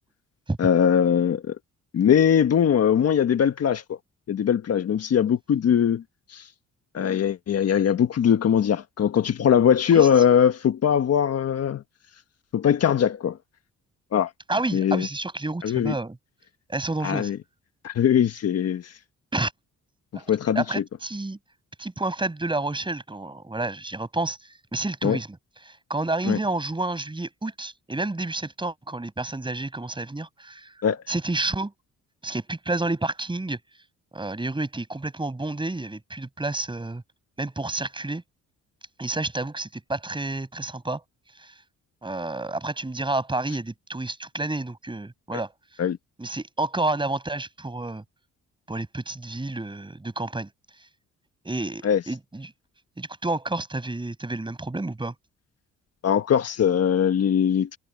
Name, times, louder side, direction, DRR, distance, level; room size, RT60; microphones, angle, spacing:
voice 1, 0.6-1.6 1.9-4.0 4.3-6.0 6.3-6.5 6.9-11.8 12.5-13.4 14.1-14.3 14.7-15.1 15.6-15.9 17.0-17.4 17.8-18.9 20.3-20.8 25.0-25.2 26.2-26.4 30.8-31.0 45.8-46.0 51.8-52.0 56.0-57.8, left 8 dB, 55° left, 1.4 m, -21 dB
voice 2, 14.5-16.2 16.7-17.3 19.3-19.5 20.1-20.2 20.5-21.4 21.8-24.4 24.7-25.4 25.7-30.7 31.1-31.7 32.2-33.6 34.1-37.0 37.4-38.2 39.0-41.0 41.4-41.5 42.0-45.5 46.2-48.0 48.7-50.5 51.4-52.5 53.0-55.1, right 2 dB, 15° right, 7.9 m, -30 dB
cardioid pair, 90°, 30 cm